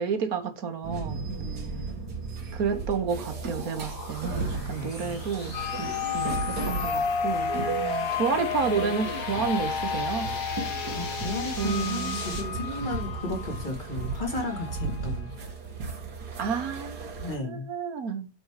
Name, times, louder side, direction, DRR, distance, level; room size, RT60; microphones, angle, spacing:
voice 1, 0.0-1.3 2.5-7.5 8.1-10.3 11.6-12.2 16.4-17.1 17.4-18.3, right 6 dB, 65° right, 1.8 m, -30 dB
sound 1, 0.8-17.4, right 4 dB, 80° right, 2.2 m, -35 dB
voice 2, 1.3-1.9 4.3-5.2 7.6-8.1 10.9-15.3 17.2-17.7, left 2 dB, 30° left, 2.5 m, -35 dB
sound 2, 2.1-12.4, left 3 dB, 90° left, 2.6 m, -41 dB
sound 3, 5.5-15.3, left 7 dB, 65° left, 1.3 m, -33 dB
9.1 x 4.4 x 4.8 m
omnidirectional pair, 1.7 m